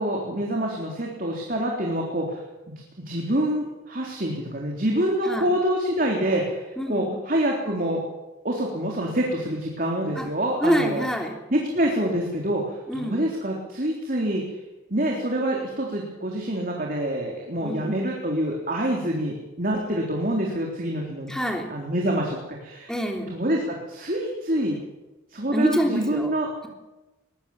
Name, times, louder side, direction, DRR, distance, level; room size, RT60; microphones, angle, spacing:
voice 1, 0.0-2.4 2.7-8.0 8.4-11.1 11.5-14.4 14.9-21.3 21.7-22.9 23.3-24.8 25.3-26.5, right 1 dB, 40° right, 0 dB, 3.6 m, -26 dB
voice 2, 6.8-7.2 10.2-10.3 10.6-11.4 12.9-13.2 17.6-18.0 21.3-21.7 22.9-23.4 25.5-26.3, equal, 5° left, 2 dB, 3.1 m, -26 dB
22.0 x 19.5 x 7.3 m, 1.1 s
head